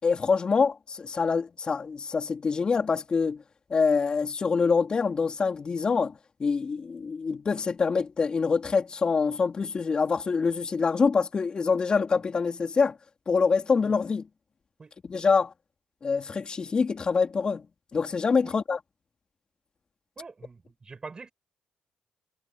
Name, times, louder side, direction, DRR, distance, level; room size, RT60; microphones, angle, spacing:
voice 1, 0.0-3.4 3.7-6.1 6.4-12.9 13.3-14.2 15.1-15.5 16.0-17.6 17.9-18.8, left 5 dB, 40° left, 3.6 m, -25 dB
voice 2, 20.2-21.3, right 4 dB, 35° right, 7.4 m, -44 dB
cardioid pair, 70°, 2 cm